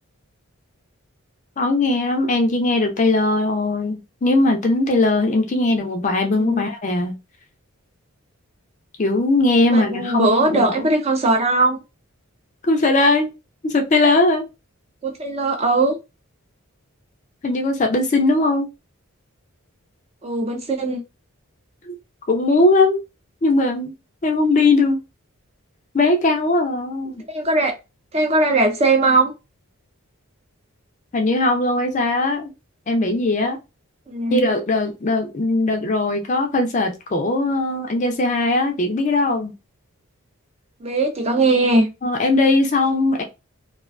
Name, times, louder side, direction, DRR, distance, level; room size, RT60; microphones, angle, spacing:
voice 1, 1.6-7.1 9.0-10.9 12.7-13.3 13.6-14.4 17.4-18.7 21.9-22.0 22.3-23.0 23.4-23.9 24.2-25.0 25.9-27.2 31.1-32.5 32.9-33.6 34.3-39.5 42.0-43.2, left 2 dB, 35° left, 0.4 m, -19 dB
voice 2, 9.7-11.8 15.0-16.0 20.2-21.0 27.3-27.7 28.1-29.3 34.1-34.4 40.8-41.9, right 2 dB, 30° right, 0.4 m, -19 dB
2.3 x 2.2 x 2.3 m
head